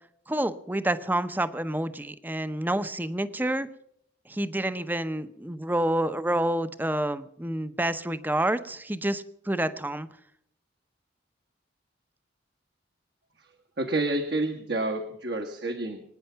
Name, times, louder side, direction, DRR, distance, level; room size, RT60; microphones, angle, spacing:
voice 1, 0.3-3.7 4.3-10.1, right 1 dB, 10° right, 12 dB, 0.7 m, -28 dB
voice 2, 13.8-16.0, right 2 dB, 60° right, 4 dB, 1.5 m, -29 dB
24.5 x 9.6 x 5.7 m, 0.71 s
head